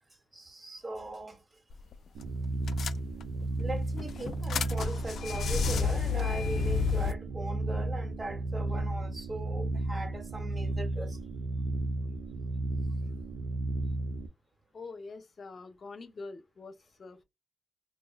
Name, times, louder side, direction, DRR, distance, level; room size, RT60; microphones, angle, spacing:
voice 1, 0.3-1.4 3.6-11.2, right 1 dB, 30° right, 1.9 m, -39 dB
sound 1, 1.7-1.9 2.2-2.3 2.7-3.5 4.0-7.1, left 7 dB, 75° left, 0.3 m, -32 dB
sound 2, 2.1-14.3, right 2 dB, 80° right, 0.5 m, -33 dB
voice 2, 14.7-17.2, left 3 dB, 55° left, 0.7 m, -45 dB
4.3 x 2.6 x 2.3 m
cardioid pair, 60°, 0 cm